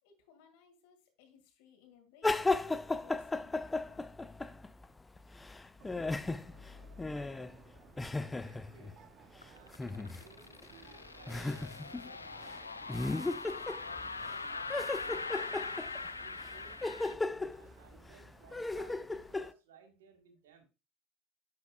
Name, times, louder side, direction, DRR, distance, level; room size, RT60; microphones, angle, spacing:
voice 1, 0.0-4.2, left 7 dB, 60° left, 4 dB, 2.1 m, -63 dB
sound 1, 2.2-4.9 5.2-9.0 9.7-10.2 10.6-10.7 11.3-12.1 12.4-12.5 12.9-14.3 14.7-19.5, left 3 dB, 15° left, 0.5 m, -36 dB
sound 2, 5.8-19.4, right 6 dB, 40° right, 1.0 m, -60 dB
voice 2, 8.2-9.1 9.4-13.3 13.8-15.9 16.2-20.6, right 6 dB, 70° right, 6 dB, 1.7 m, -61 dB
sound 3, 9.4-17.1, left 4 dB, 85° left, 0.4 m, -42 dB
10.5 x 6.0 x 2.4 m, 0.28 s
figure-of-eight pair, 70°, 0 cm